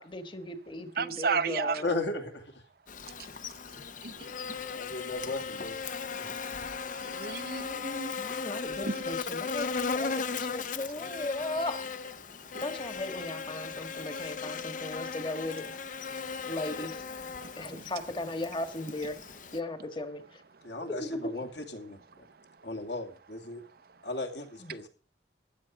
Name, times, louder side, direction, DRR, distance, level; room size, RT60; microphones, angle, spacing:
voice 1, 0.0-1.9 8.2-10.1 10.4-11.8 12.6-15.7 16.5-17.0 17.6-19.2 19.5-20.2 21.0-21.2 24.6-24.7, left 2 dB, 25° left, 8 dB, 1.5 m, -37 dB
voice 2, 1.0-1.8 4.0-4.3 7.1-8.1 8.9-9.0 17.7-17.8, right 5 dB, 55° right, 12 dB, 0.7 m, -32 dB
voice 3, 1.8-2.6 4.7-5.8 6.2-6.4 16.8-16.9 20.6-22.0 22.6-23.6 24.0-24.9, left 2 dB, 70° left, 5 dB, 2.7 m, -36 dB
Buzz, 2.9-19.6, left 5 dB, 45° left, 0.7 m, -37 dB
15.0 x 11.0 x 4.9 m, 0.39 s
head